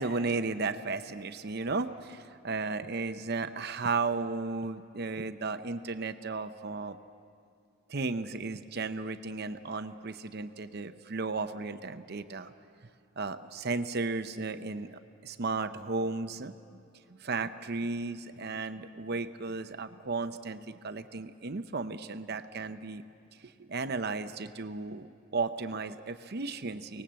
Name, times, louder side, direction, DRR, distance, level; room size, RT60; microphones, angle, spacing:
voice 1, 0.0-7.0 7.9-12.5 13.2-16.5 17.2-23.0 23.6-27.0, right 3 dB, 55° right, 10 dB, 0.8 m, -34 dB
24.5 x 19.0 x 7.6 m, 2.5 s
head